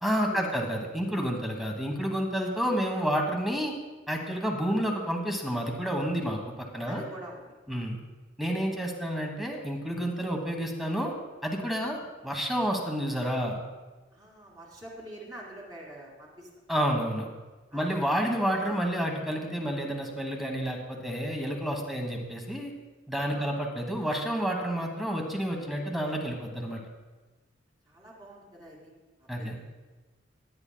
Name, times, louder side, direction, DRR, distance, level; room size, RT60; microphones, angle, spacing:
voice 1, 0.0-3.7 4.1-7.0 7.7-8.0 8.4-11.1 11.4-12.0 12.2-13.6 16.7-17.3 17.7-22.7 23.1-26.8 29.3-29.5, equal, ahead, 1 dB, 1.2 m, -30 dB
voice 2, 6.9-7.8 14.1-16.5 17.7-17.9 23.3-23.5 27.9-28.9 29.2-29.6, right 1 dB, 20° right, -2 dB, 2.3 m, -46 dB
17.5 x 9.7 x 2.3 m, 1.2 s
head